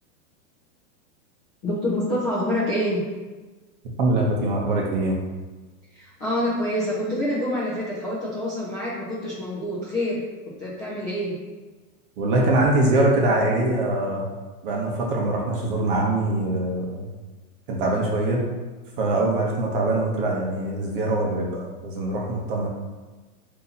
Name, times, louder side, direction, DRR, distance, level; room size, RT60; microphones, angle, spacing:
voice 1, 1.6-3.0 5.9-10.2 10.6-11.3, left 1 dB, 15° left, -10 dB, 0.5 m, -26 dB
voice 2, 4.0-5.1 12.2-14.2 14.6-17.1 17.7-18.4 19.0-22.7, right 2 dB, 35° right, -1 dB, 0.8 m, -23 dB
4.1 x 2.8 x 4.0 m, 1.3 s
supercardioid pair, 170°, 45 cm